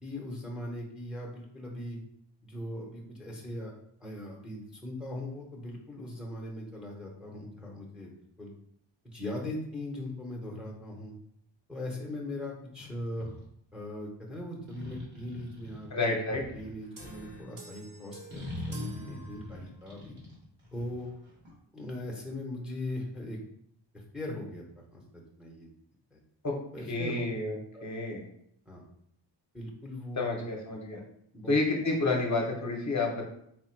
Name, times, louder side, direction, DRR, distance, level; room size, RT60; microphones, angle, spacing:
voice 1, 0.0-2.0 2.4-3.7 4.0-8.1 8.4-8.5 9.1-11.1 11.7-13.3 13.7-20.1 20.7-21.1 21.7-23.4 24.1-24.6 24.9-25.7 26.1-26.2 26.7-27.3 27.7-27.8 28.7-28.8 29.5-30.5 31.3-31.5, left 1 dB, ahead, -1 dB, 0.6 m, -39 dB
sound 1, 12.8-13.5 14.6-17.4 18.3-21.5, left 2 dB, 90° right, 1.3 m, -42 dB
voice 2, 15.9-16.4 26.4-26.6 26.9-27.5 27.8-28.2 30.2-31.0 31.5-33.2, left 3 dB, 40° left, 0 dB, 0.7 m, -29 dB
sound 2, 17.0-19.9, right 3 dB, 45° right, 0.9 m, -49 dB
4.2 x 2.2 x 4.3 m, 0.72 s
wide cardioid pair, 170°, 45 cm